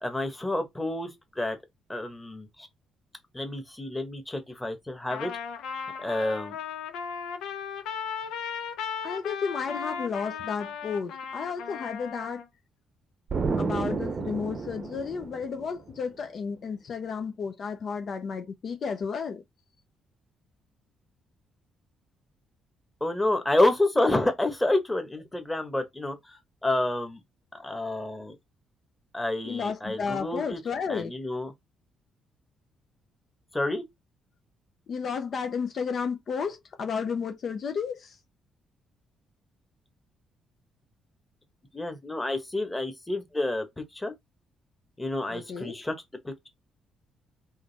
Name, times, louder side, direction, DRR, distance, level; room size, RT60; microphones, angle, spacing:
voice 1, 0.0-1.1 1.4-1.6 1.9-2.7 3.3-5.3 6.0-6.6 23.0-27.2 27.6-28.3 29.1-30.6 30.9-31.5 33.5-33.8 41.7-43.7 43.9-44.1 45.0-45.9 46.2-46.5, left 2 dB, 15° left, 1.3 m, -29 dB
Trumpet, 5.1-12.5, left 6 dB, 85° left, 0.8 m, -36 dB
voice 2, 9.0-12.4 13.5-19.4 29.5-31.1 34.9-38.2 45.3-45.8, left 6 dB, 55° left, 0.6 m, -32 dB
Explosion, 13.3-16.0, right 4 dB, 40° right, 0.7 m, -31 dB
3.8 x 3.1 x 4.1 m
cardioid pair, 90°, 0 cm